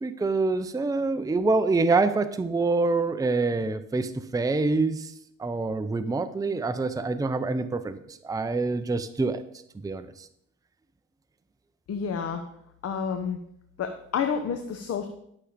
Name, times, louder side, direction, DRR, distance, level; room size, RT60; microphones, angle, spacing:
voice 1, 0.0-5.1 5.4-9.4 9.8-10.3, right 3 dB, 10° right, 11 dB, 0.6 m, -26 dB
voice 2, 11.9-12.4 12.8-13.4 13.8-15.1, left 6 dB, 55° left, 6 dB, 1.1 m, -29 dB
11.5 x 6.5 x 5.0 m, 0.74 s
cardioid pair, 90°, 30 cm